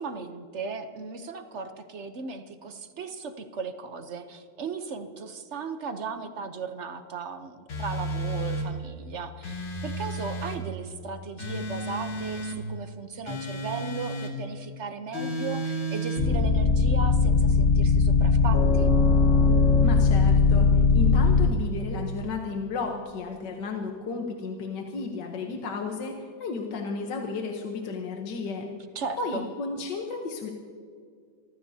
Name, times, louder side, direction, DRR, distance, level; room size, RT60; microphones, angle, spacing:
voice 1, 0.0-18.9 28.9-29.5, right 4 dB, 55° right, 8 dB, 0.8 m, -37 dB
sound 1, 7.7-8.7 9.4-10.6 11.4-12.6 13.3-14.3 15.1-16.2, right 1 dB, 85° left, 2.6 m, -32 dB
sound 2, 16.2-21.5, left 4 dB, 40° left, 0.8 m, -20 dB
voice 2, 19.8-28.7 29.2-30.5, left 4 dB, 65° left, 2 dB, 1.6 m, -33 dB
26.0 x 14.5 x 2.8 m, 2.2 s
omnidirectional pair, 2.2 m